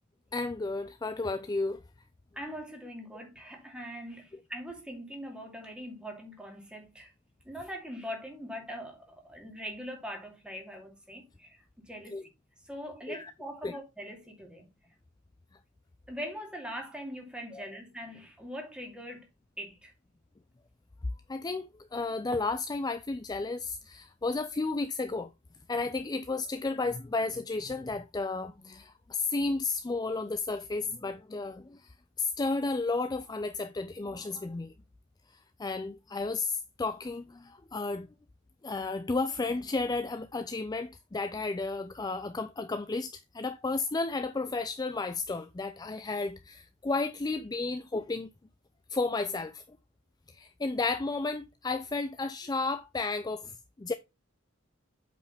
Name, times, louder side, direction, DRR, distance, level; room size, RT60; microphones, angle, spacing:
voice 1, 0.3-1.8 12.1-12.2 13.1-13.3 13.6-13.7 17.5-17.6 21.3-25.3 25.7-31.8 32.2-34.7 35.6-38.1 38.6-48.3 48.9-49.6 50.3-53.5 53.8-53.9, left 3 dB, 20° left, 0.4 m, -33 dB
voice 2, 2.3-7.1 7.4-12.2 12.6-14.7 16.1-19.3 19.6-19.9, equal, 5° right, 2.4 m, -42 dB
8.3 x 5.1 x 3.4 m
head